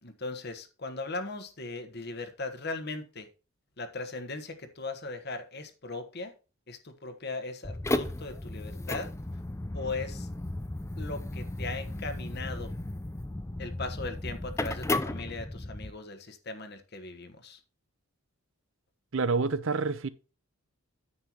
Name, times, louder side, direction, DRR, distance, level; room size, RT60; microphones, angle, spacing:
voice 1, 0.0-3.3 3.8-6.3 6.7-9.1 9.7-10.3 11.0-12.7 13.6-17.6, left 3 dB, 45° left, 1.3 m, -38 dB
sound 1, 7.6-15.9, left 2 dB, 15° left, 0.5 m, -34 dB
voice 2, 19.1-20.1, right 4 dB, 60° right, 0.7 m, -27 dB
9.7 x 7.8 x 3.0 m
head